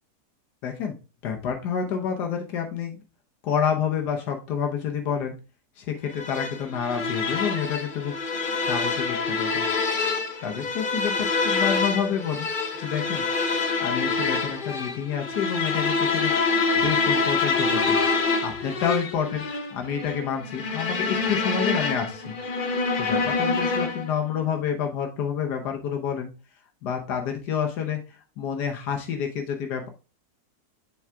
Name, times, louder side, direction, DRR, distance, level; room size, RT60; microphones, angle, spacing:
voice 1, 0.6-0.9 1.2-3.0 3.4-5.3 5.8-8.1 8.5-9.6 10.4-12.5 12.8-13.2 13.8-16.3 16.8-18.0 18.4-19.4 19.7-22.3 23.0-26.3 26.8-29.9, left 7 dB, 90° left, 3 dB, 1.4 m, -28 dB
sound 1, 6.2-24.2, left 4 dB, 40° left, 0.8 m, -26 dB
7.3 x 4.8 x 3.4 m, 0.33 s
omnidirectional pair, 1.7 m